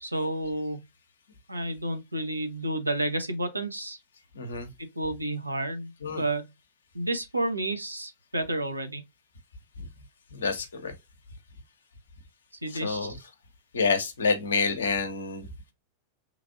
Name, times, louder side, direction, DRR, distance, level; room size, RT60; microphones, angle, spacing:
voice 1, 0.0-0.8 1.5-4.0 5.0-5.9 6.2-6.5 6.9-9.0 12.6-13.2, right 1 dB, 85° right, 0.6 m, -30 dB
voice 2, 4.3-4.7 6.0-6.2 10.3-10.9 12.7-13.1 13.7-15.5, left 4 dB, 70° left, 0.7 m, -28 dB
3.1 x 2.4 x 2.5 m
figure-of-eight pair, 90°, 0 cm